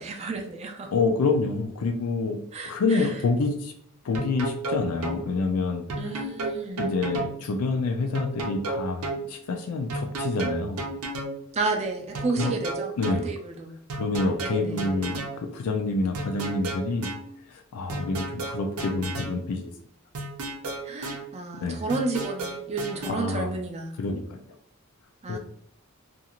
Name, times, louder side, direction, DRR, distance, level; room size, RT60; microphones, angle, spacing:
voice 1, 0.0-0.9 2.5-3.2 6.0-6.9 11.5-13.8 14.4-14.9 20.8-24.0 25.2-25.4, right 3 dB, 30° right, 3 dB, 0.4 m, -32 dB
voice 2, 0.9-2.4 2.7-3.7 4.0-5.9 6.8-10.8 12.4-12.5 13.0-13.3 13.9-17.1 17.5-19.7 21.6-21.8 23.1-23.5 24.0-24.4 25.3-25.4, left 3 dB, 80° left, 4 dB, 0.4 m, -27 dB
sound 1, 4.1-5.2 5.9-7.4 8.1-9.2 9.9-11.4 12.1-13.2 13.9-15.4 16.1-17.2 17.9-19.4 20.1-21.2 21.9-23.1, right 2 dB, 85° right, 0.6 m, -32 dB
2.6 x 2.4 x 2.8 m, 0.67 s
head